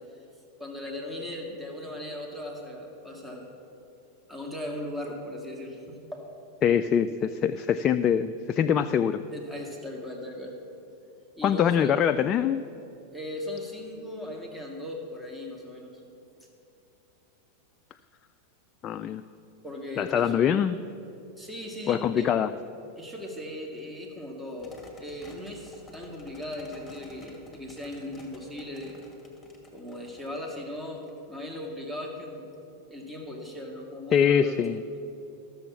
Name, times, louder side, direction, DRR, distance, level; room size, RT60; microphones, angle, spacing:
voice 1, 0.6-3.5 4.3-6.3 9.3-10.6 11.4-11.9 13.1-16.0 19.6-20.3 21.3-22.3 23.0-29.0 29.7-32.5 32.9-34.6, left 1 dB, 10° right, 0 dB, 1.8 m, -38 dB
voice 2, 6.6-9.2 11.4-12.6 18.8-19.2 20.0-20.8 21.9-22.5 34.1-34.8, left 8 dB, 35° left, 10 dB, 0.3 m, -24 dB
sound 1, 24.6-31.6, left 3 dB, 15° left, 2.2 m, -52 dB
13.0 x 7.0 x 6.0 m, 2.8 s
hypercardioid pair, 95°, 0 cm